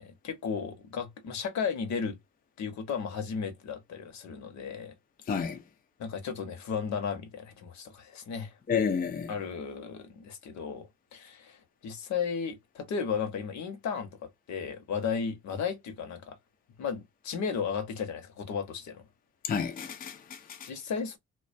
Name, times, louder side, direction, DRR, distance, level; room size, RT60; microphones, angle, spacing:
voice 1, 0.0-2.2 2.6-4.9 5.3-5.5 6.0-8.6 9.3-16.4 16.8-19.0 20.6-21.2, left 6 dB, 65° left, 0.9 m, -35 dB
voice 2, 5.3-5.6 8.7-9.3 19.4-20.7, left 6 dB, 30° left, 0.5 m, -30 dB
2.3 x 2.2 x 2.5 m
cardioid pair, 90°, 30 cm